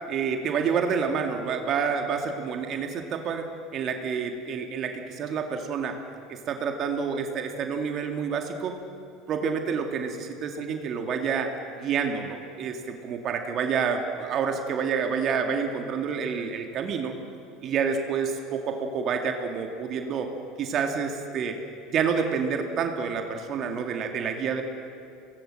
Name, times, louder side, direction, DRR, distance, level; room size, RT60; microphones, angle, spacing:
voice 1, 0.1-6.0 6.3-8.8 9.3-17.2 17.6-21.6 21.9-24.6, right 6 dB, 45° right, 4 dB, 2.2 m, -28 dB
25.0 x 18.5 x 7.7 m, 2.6 s
hypercardioid pair, 70°, 0 cm